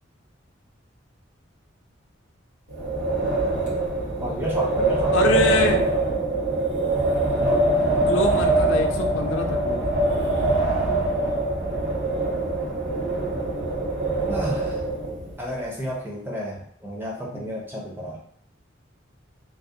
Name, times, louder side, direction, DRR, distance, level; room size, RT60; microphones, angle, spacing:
Wind, 2.7-15.3, right 2 dB, 70° right, 1.2 m, -23 dB
voice 1, 4.1-6.0 7.4-7.8 14.3-14.8 15.4-18.2, equal, 10° right, -3 dB, 0.5 m, -32 dB
voice 2, 5.1-5.9 8.1-9.8 17.3-17.6, left 3 dB, 75° left, 4 dB, 0.4 m, -25 dB
2.4 x 2.0 x 2.7 m, 0.64 s
head